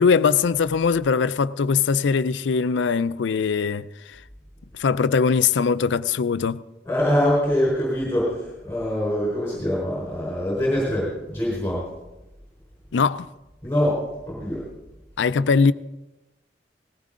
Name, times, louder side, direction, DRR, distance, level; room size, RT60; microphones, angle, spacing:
voice 1, 0.0-4.2 4.7-6.6 12.9-13.3 15.2-15.7, left 5 dB, 85° left, 0.4 m, -21 dB
voice 2, 6.8-11.8 13.6-14.0 14.3-14.6, equal, 15° left, 4.4 m, -24 dB
19.0 x 16.0 x 3.7 m
head